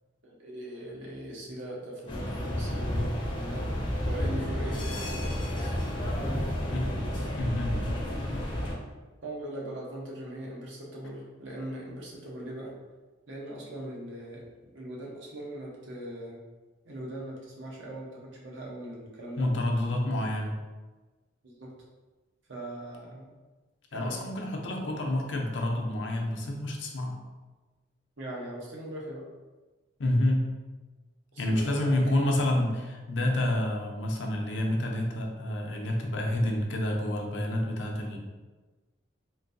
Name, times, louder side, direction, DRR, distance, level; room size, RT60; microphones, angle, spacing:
voice 1, 0.2-4.8 5.5-5.8 6.2-6.5 9.2-12.7 13.3-14.4 14.7-16.4 16.8-19.5 21.4-21.7 22.5-23.3 23.9-24.2 24.8-24.9 28.2-29.2 31.3-32.5, right 1 dB, 90° right, -3 dB, 0.9 m, -40 dB
sound 1, 2.1-8.7, equal, 25° left, 0.5 m, -31 dB
voice 2, 7.4-7.7 19.4-20.5 23.9-27.2 30.0-30.5 31.4-38.2, left 1 dB, 75° left, 1 dB, 0.6 m, -28 dB
3.8 x 2.6 x 2.6 m, 1.2 s
head